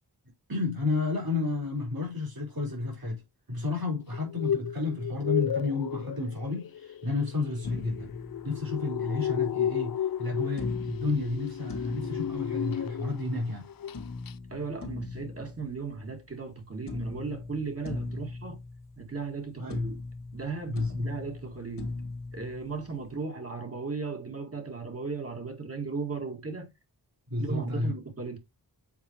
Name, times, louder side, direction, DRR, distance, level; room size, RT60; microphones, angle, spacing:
voice 1, 0.5-3.2 3.5-8.1 8.4-13.7 19.6-19.9 20.7-21.1 27.3-27.9, left 3 dB, 60° right, 4.4 m, -31 dB
sound 1, 4.1-13.4 13.7-14.0 14.3-14.4, left 9 dB, 60° left, 0.5 m, -33 dB
sound 2, 7.6-9.2 10.6-13.2 13.9-16.5 16.9-19.4 19.7-23.2, left 3 dB, 85° left, 1.6 m, -39 dB
voice 2, 14.5-18.6 19.0-20.0 20.3-21.9 22.3-26.7 27.4-28.4, right 4 dB, 35° right, 2.0 m, -36 dB
7.2 x 4.5 x 3.0 m
cardioid pair, 55°, 40 cm